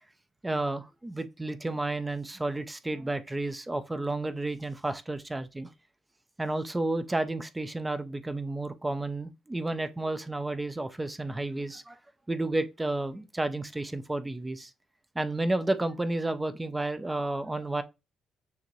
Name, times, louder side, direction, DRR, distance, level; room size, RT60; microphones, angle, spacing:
voice 1, 0.4-5.7 6.4-12.0 12.3-14.7 15.2-17.8, right 2 dB, 10° right, 0.4 m, -31 dB
6.4 x 2.5 x 3.0 m
cardioid pair, 135°, 0 cm